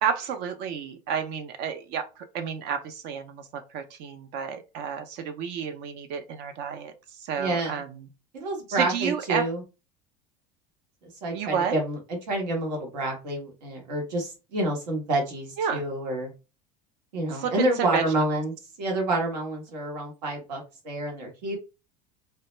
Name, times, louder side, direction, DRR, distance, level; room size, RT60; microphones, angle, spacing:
voice 1, 0.0-6.9 7.2-8.1 8.7-9.5 11.3-11.8 15.6-15.8 17.3-18.0 18.3-18.4, right 7 dB, 55° right, 0.5 m, -30 dB
voice 2, 7.4-7.8 8.3-9.6 11.2-12.0 12.3-16.3 17.1-21.6, right 1 dB, 85° right, 1.0 m, -28 dB
2.1 x 2.0 x 3.0 m
hypercardioid pair, 80°, 21 cm